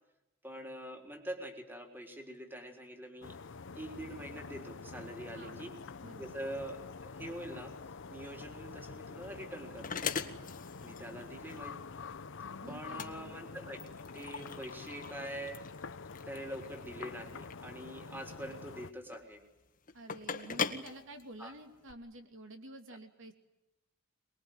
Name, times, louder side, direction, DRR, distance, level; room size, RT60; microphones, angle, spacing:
voice 1, 0.4-3.4 3.7-5.7 6.2-7.7 8.1-10.1 10.8-11.8 12.7-13.8 14.1-15.6 16.3-19.4 21.4-21.5, right 1 dB, 10° right, 4 dB, 3.7 m, -44 dB
sound 1, 3.2-18.9, left 4 dB, 55° left, 0.8 m, -47 dB
voice 2, 6.0-6.3 12.6-13.4 19.9-23.3, right 1 dB, 60° right, 6 dB, 2.6 m, -50 dB
sound 2, 8.7-21.9, left 6 dB, 40° left, 1.8 m, -42 dB
24.0 x 22.0 x 9.2 m, 0.99 s
head